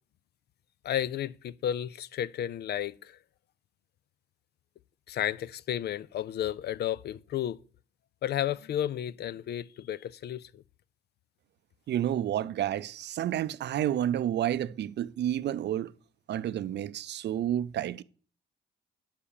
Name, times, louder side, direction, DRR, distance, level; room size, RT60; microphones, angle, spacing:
voice 1, 0.8-3.2 5.1-7.6 8.2-10.6, left 11 dB, 55° left, 0.4 m, -32 dB
voice 2, 11.9-15.9 16.3-18.0, right 11 dB, 60° right, 0.5 m, -30 dB
8.6 x 5.6 x 7.2 m
cardioid pair, 90°, 20 cm